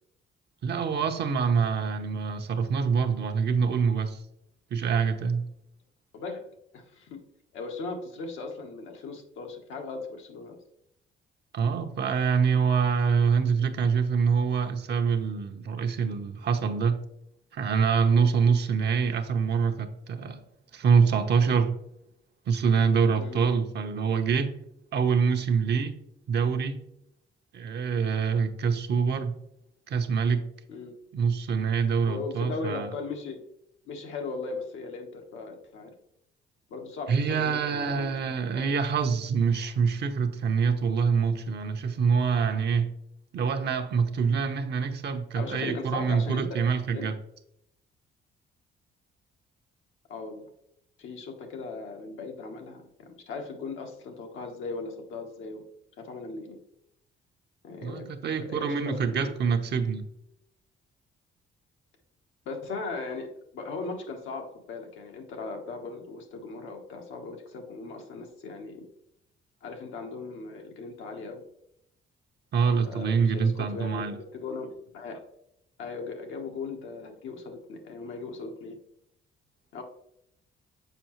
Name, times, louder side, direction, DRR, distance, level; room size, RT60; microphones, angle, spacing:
voice 1, 0.6-4.2 4.7-5.4 11.5-17.0 17.5-20.4 20.7-21.8 22.5-24.5 24.9-26.0 26.3-26.8 27.5-29.4 29.9-30.4 31.1-32.9 37.1-42.9 43.3-47.1 57.8-60.0 72.5-74.2, right 6 dB, 60° right, 6 dB, 0.8 m, -25 dB
voice 2, 6.1-6.5 6.7-7.2 7.5-10.6 23.2-23.4 30.7-31.0 32.0-33.4 33.8-35.9 36.7-38.1 38.5-38.7 45.3-46.6 46.9-47.1 50.1-50.5 51.0-55.6 56.0-56.6 57.6-58.1 58.4-59.3 62.4-68.9 69.6-71.4 72.9-74.0 74.4-75.3 75.8-78.8 79.7-79.8, left 4 dB, 80° left, 3 dB, 1.1 m, -38 dB
6.8 x 4.7 x 3.0 m, 0.78 s
cardioid pair, 90°, 20 cm